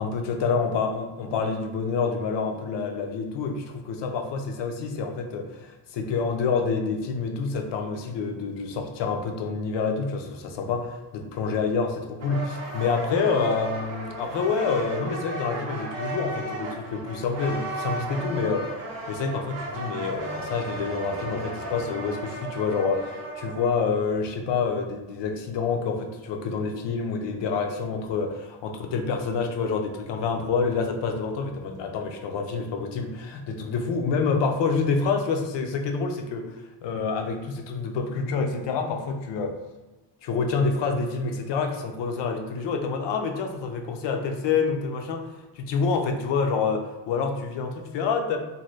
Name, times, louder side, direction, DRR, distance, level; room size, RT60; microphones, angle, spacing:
voice 1, 0.0-18.8 19.1-39.5 40.2-45.3 45.6-48.4, left 5 dB, 70° left, 4 dB, 0.6 m, -27 dB
sound 1, 12.2-24.0, right 2 dB, 40° right, 0.5 m, -35 dB
2.7 x 2.6 x 3.1 m, 1.1 s
cardioid pair, 165°, 44 cm